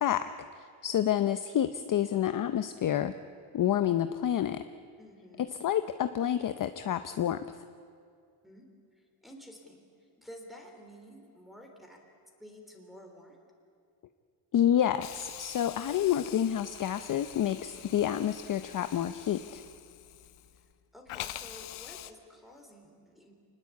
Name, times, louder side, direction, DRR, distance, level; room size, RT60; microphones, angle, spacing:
voice 1, 0.0-3.1 3.5-4.6 5.4-7.5 14.5-19.6, left 10 dB, 40° left, 11 dB, 0.7 m, -29 dB
voice 2, 5.0-5.5 8.4-8.7 8.9-12.0 12.4-13.4 20.9-23.3, equal, ahead, 0 dB, 3.5 m, -51 dB
Hiss, 15.0-20.7 21.1-22.1, left 13 dB, 85° left, 1.1 m, -45 dB
26.5 x 19.5 x 8.4 m, 2.3 s
cardioid pair, 150°, 48 cm